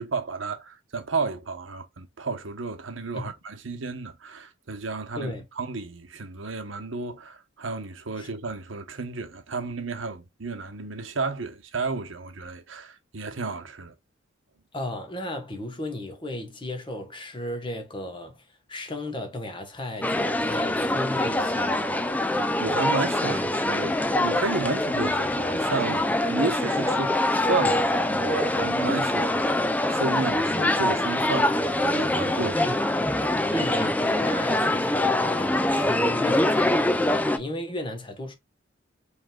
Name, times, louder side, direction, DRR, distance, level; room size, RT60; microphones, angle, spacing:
voice 1, 0.0-13.9 22.2-22.3 22.6-27.1 27.4-32.6, right 3 dB, 75° right, 1.0 m, -32 dB
voice 2, 14.7-22.0 32.5-32.8 33.5-38.3, left 1 dB, 25° left, 1.2 m, -35 dB
sound 1, 20.0-37.4, left 1 dB, 10° left, 0.4 m, -24 dB
5.1 x 3.4 x 2.3 m
head